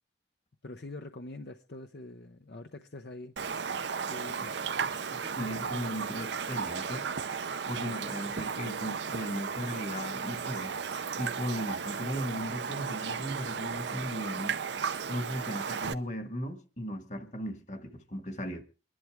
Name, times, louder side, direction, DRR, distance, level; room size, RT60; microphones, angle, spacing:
voice 1, 0.6-3.3 4.1-4.6, left 2 dB, 65° left, 0.8 m, -44 dB
Raindrop, 3.4-15.9, right 6 dB, 80° right, 0.7 m, -35 dB
voice 2, 4.8-7.1 7.7-10.8 11.2-14.6 15.1-18.6, equal, 40° left, 1.6 m, -37 dB
24.5 x 11.0 x 3.5 m
head